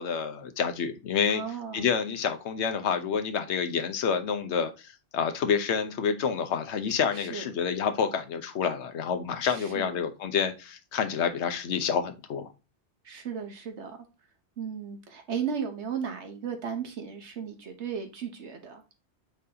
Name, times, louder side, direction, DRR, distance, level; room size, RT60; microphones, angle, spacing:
voice 1, 0.0-1.4 1.7-12.5, left 6 dB, 75° left, 1.1 m, -28 dB
voice 2, 1.3-1.9 7.1-7.5 9.4-10.0 13.0-14.0 14.6-18.8, right 7 dB, 75° right, 1.3 m, -35 dB
8.5 x 3.9 x 2.8 m
omnidirectional pair, 1.2 m